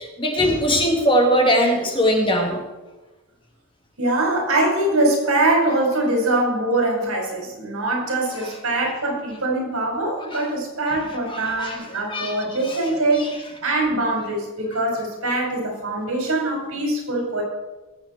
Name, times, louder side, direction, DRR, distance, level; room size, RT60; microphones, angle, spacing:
voice 1, 0.0-2.6 11.3-12.4 12.7-12.8 13.1-13.3, equal, 25° left, 2 dB, 1.8 m, -21 dB
voice 2, 4.0-13.3 13.6-17.4, right 2 dB, 75° right, 0 dB, 4.8 m, -23 dB
20.0 x 7.4 x 4.4 m, 1.2 s
head